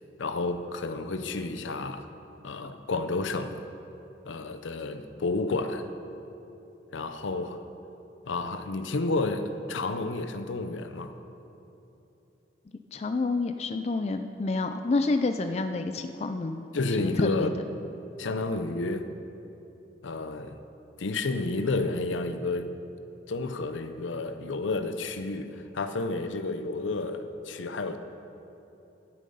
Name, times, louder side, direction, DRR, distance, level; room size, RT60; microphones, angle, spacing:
voice 1, 0.2-2.1 2.4-3.6 4.3-5.9 6.9-7.6 8.3-11.1 16.7-17.5 18.2-19.1 20.0-20.6 21.0-22.7 23.3-28.0, left 3 dB, 80° left, 9 dB, 0.6 m, -31 dB
voice 2, 12.9-16.7 17.0-17.5, left 3 dB, 35° left, 7 dB, 0.3 m, -28 dB
12.0 x 7.5 x 5.4 m, 3.0 s
head